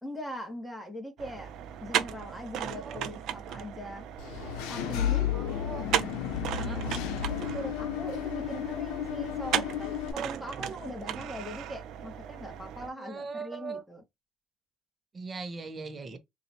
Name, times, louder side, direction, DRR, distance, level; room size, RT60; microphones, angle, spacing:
voice 1, 0.0-1.5 1.8-4.1 4.7-5.3 7.2-14.0, equal, 5° left, 1.6 m, -40 dB
sound 1, 1.2-12.9, right 10 dB, 70° right, 0.6 m, -36 dB
Engine / Mechanisms, 4.2-10.1, left 10 dB, 90° left, 0.6 m, -32 dB
voice 2, 5.3-5.9 6.6-6.8 12.8-13.8 15.1-16.2, right 4 dB, 30° right, 1.0 m, -40 dB
4.0 x 2.6 x 2.8 m
cardioid pair, 105°, 0 cm